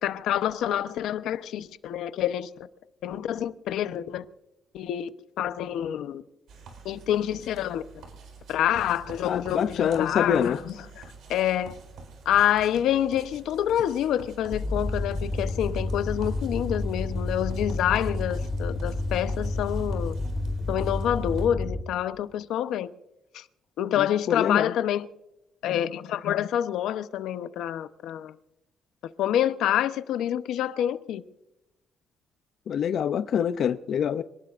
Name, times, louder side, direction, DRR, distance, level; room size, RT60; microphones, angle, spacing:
voice 1, 0.0-2.5 3.0-4.2 4.7-6.2 6.8-7.8 8.5-11.0 11.3-11.8 12.2-20.1 20.7-22.9 23.3-23.4 23.8-25.1 25.6-28.3 29.2-31.2, left 11 dB, 90° left, 0.8 m, -27 dB
sound 1, 6.5-21.5, right 4 dB, 70° right, 4.5 m, -47 dB
voice 2, 9.2-10.6 24.0-24.7 32.7-34.2, left 8 dB, 55° left, 0.5 m, -25 dB
sound 2, 14.5-21.8, left 2 dB, 5° left, 1.9 m, -30 dB
26.5 x 18.5 x 2.5 m
cardioid pair, 150°, 0 cm